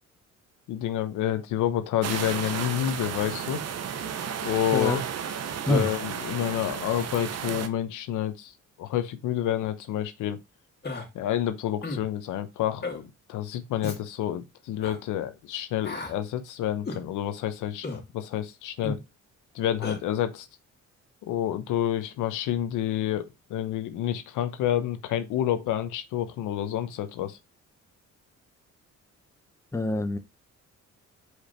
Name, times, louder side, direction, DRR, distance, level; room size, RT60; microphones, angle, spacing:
voice 1, 0.7-3.6 4.4-5.0 5.6-10.4 11.1-19.0 19.5-20.5 21.2-27.4, left 11 dB, 90° left, 1.0 m, -29 dB
sound 1, 2.0-7.7, right 8 dB, 55° right, 1.1 m, -33 dB
voice 2, 4.7-5.0 5.7-5.9 29.7-30.2, left 1 dB, 10° left, 1.0 m, -25 dB
Human voice, 10.8-11.1 11.8-12.1 12.8-13.0 13.8-14.0 14.8-15.0 15.8-16.1 16.9-17.0 17.8-18.0 18.8-19.0 19.8-20.0, left 2 dB, 35° left, 2.7 m, -34 dB
5.0 x 4.9 x 4.4 m
cardioid pair, 90°, 30 cm